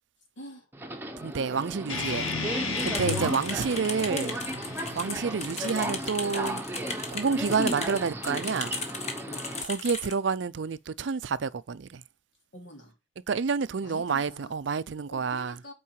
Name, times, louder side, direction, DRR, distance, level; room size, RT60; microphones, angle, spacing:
voice 1, 0.3-0.7 3.0-3.8 9.2-9.4 12.5-13.0 13.8-14.5 15.1-15.7, equal, 65° left, 3.3 m, -46 dB
Subway metro underground, 0.7-9.6, right 1 dB, 10° right, 1.0 m, -35 dB
voice 2, 1.2-2.3 2.8-4.4 5.0-6.6 7.1-8.8 9.6-12.0 13.3-15.6, right 5 dB, 65° right, 0.5 m, -29 dB
sound 1, 1.9-6.9, left 4 dB, 85° left, 2.1 m, -35 dB
sound 2, 2.8-10.1, left 4 dB, 35° left, 1.4 m, -36 dB
8.6 x 4.7 x 4.6 m
head